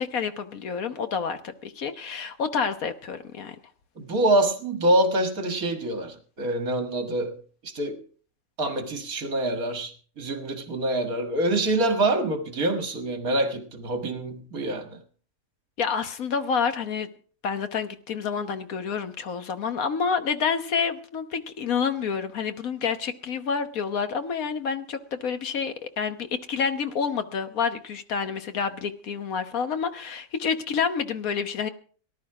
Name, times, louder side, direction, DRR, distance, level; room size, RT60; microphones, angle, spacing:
voice 1, 0.0-3.6 15.8-17.1 17.4-31.7, left 6 dB, 60° left, 1.5 m, -28 dB
voice 2, 4.0-7.4 7.6-8.0 8.6-15.0, right 1 dB, 65° right, 2.2 m, -26 dB
18.5 x 11.0 x 4.8 m
omnidirectional pair, 1.7 m